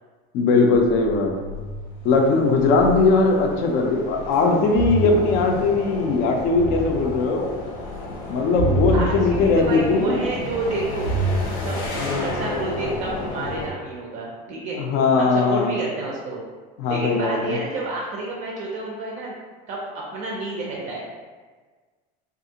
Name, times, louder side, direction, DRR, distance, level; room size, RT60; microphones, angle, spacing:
voice 1, 0.3-1.3 2.0-7.6 8.3-10.2 12.0-12.3 14.8-15.8 16.8-17.5, left 3 dB, 50° left, 2 dB, 0.5 m, -19 dB
sound 1, 0.7-13.7, equal, 70° left, 0.9 m, -29 dB
voice 2, 8.9-11.1 11.6-11.8 12.1-14.8 15.2-16.4 16.9-19.3 19.7-21.1, right 2 dB, 40° right, -3 dB, 0.4 m, -29 dB
3.4 x 2.4 x 2.8 m, 1.4 s
cardioid pair, 170°, 20 cm